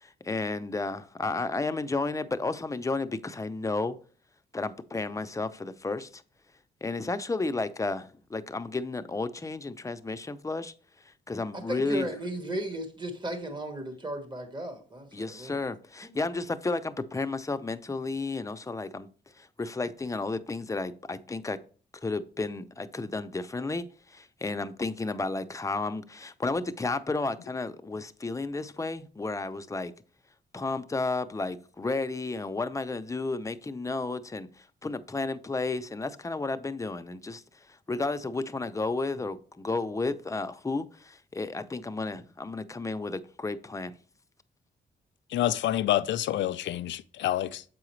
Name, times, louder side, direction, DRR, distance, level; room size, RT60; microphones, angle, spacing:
voice 1, 0.0-4.0 4.5-6.2 6.8-10.7 11.1-12.1 15.1-19.1 19.4-21.6 22.0-29.9 30.5-43.9, left 3 dB, 15° left, 0.6 m, -32 dB
voice 2, 11.5-15.6 16.0-16.1, right 1 dB, 25° right, 1.5 m, -35 dB
voice 3, 45.3-47.6, left 12 dB, 85° left, 0.4 m, -28 dB
7.6 x 4.8 x 3.2 m
cardioid pair, 80°, 18 cm